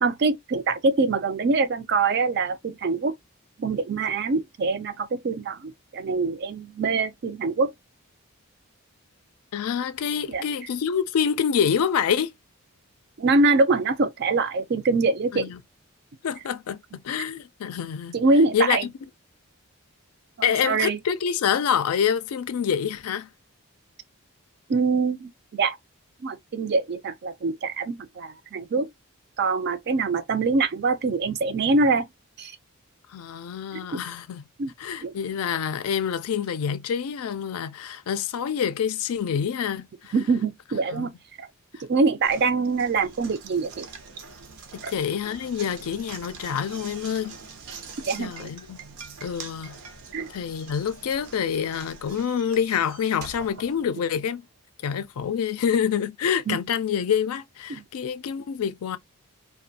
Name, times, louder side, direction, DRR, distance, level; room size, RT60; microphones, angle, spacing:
voice 1, 0.0-3.2 3.6-7.7 10.3-10.4 13.2-15.5 18.1-18.8 20.6-21.0 24.7-25.8 26.2-28.9 29.4-32.1 32.4-32.5 33.7-34.0 34.6-34.7 35.0-35.1 40.1-41.1 41.4-41.5 41.8-43.9 44.8-44.9 48.0-48.5 50.1-50.3 56.5-56.6 57.7-57.8, right 3 dB, 50° right, 0.4 m, -24 dB
voice 2, 9.5-12.3 15.3-15.6 16.2-18.2 18.5-18.8 20.4-23.3 33.1-34.4 34.8-40.1 40.9-41.1 44.7-47.4 48.2-48.8 49.2-49.8 50.3-54.5 54.8-59.0, left 7 dB, 80° left, 0.4 m, -27 dB
Knock, 42.2-54.4, right 5 dB, 90° right, 0.7 m, -44 dB
2.5 x 2.2 x 2.6 m
head